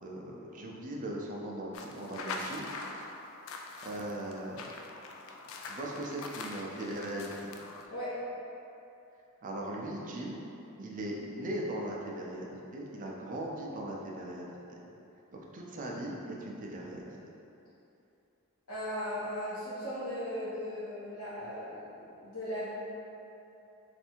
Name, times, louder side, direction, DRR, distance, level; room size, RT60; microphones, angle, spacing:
voice 1, 0.0-2.7 3.8-4.6 5.6-7.5 9.4-10.5 10.8-14.5 15.3-17.1, right 1 dB, 35° right, -2 dB, 0.4 m, -39 dB
sound 1, 1.7-7.9, left 3 dB, 65° left, 0.3 m, -43 dB
voice 2, 18.7-22.7, equal, 80° left, -9 dB, 1.3 m, -37 dB
3.3 x 2.6 x 4.3 m, 2.8 s
head